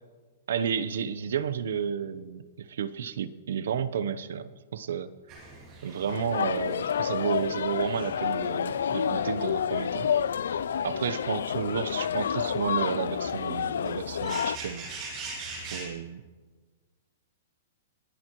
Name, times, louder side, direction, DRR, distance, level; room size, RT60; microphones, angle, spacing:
voice 1, 0.5-5.1 5.8-10.1 10.8-14.9 15.7-16.2, right 7 dB, 75° right, 15 dB, 0.8 m, -32 dB
sound 1, 5.3-15.9, right 3 dB, 25° right, 2.5 m, -44 dB
sound 2, 6.1-14.6, left 8 dB, 90° left, 0.4 m, -29 dB
29.5 x 10.5 x 3.1 m, 1.4 s
hypercardioid pair, 170°, 0 cm